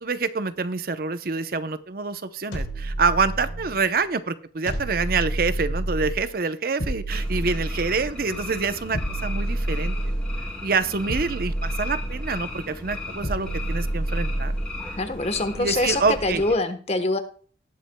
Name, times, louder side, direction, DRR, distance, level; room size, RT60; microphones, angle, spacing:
voice 1, 0.0-10.1 10.6-14.5 15.6-16.4, right 4 dB, 50° right, 12 dB, 0.7 m, -26 dB
sound 1, 2.5-3.8 4.7-6.3 6.8-8.2 8.9-10.6 11.1-12.5 13.2-14.8, right 1 dB, 85° left, 3.5 m, -29 dB
sound 2, 7.1-16.6, left 2 dB, 5° left, 2.5 m, -36 dB
voice 2, 15.0-17.2, left 2 dB, 35° left, 10 dB, 1.1 m, -24 dB
18.5 x 8.4 x 2.2 m, 0.43 s
head